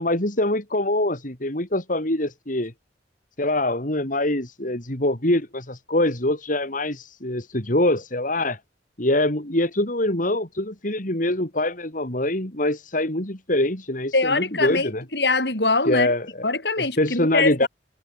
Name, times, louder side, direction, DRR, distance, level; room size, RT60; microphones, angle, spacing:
voice 1, 0.0-2.7 3.4-8.6 9.0-15.0 15.8-16.5 16.8-17.7, left 1 dB, 50° left, 4.6 m, -24 dB
voice 2, 14.1-16.1 16.4-17.7, left 3 dB, 65° left, 7.5 m, -23 dB
head